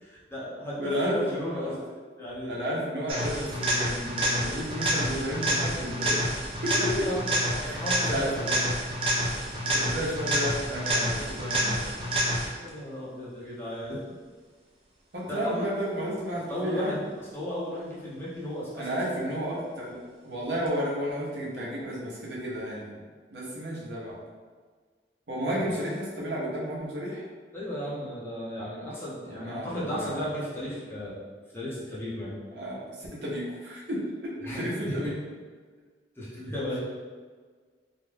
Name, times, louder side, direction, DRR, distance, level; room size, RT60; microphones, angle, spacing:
voice 1, 0.0-2.6 6.7-8.4 9.4-9.5 12.6-14.0 15.3-15.6 16.5-17.0 17.3-19.0 25.6-25.7 27.5-31.2 31.5-32.3 34.5-35.1 36.2-36.8, left 1 dB, 15° left, -8 dB, 0.6 m, -35 dB
voice 2, 0.8-1.7 2.5-6.3 6.6-6.9 7.6-8.6 9.7-11.8 15.1-17.0 18.7-23.0 23.3-24.2 25.3-27.2 29.4-30.2 32.5-35.1, equal, 80° right, -5 dB, 0.7 m, -32 dB
sound 1, 3.1-12.7 20.7-20.8, equal, 30° right, 0.4 m, -28 dB
2.4 x 2.1 x 3.2 m, 1.5 s
head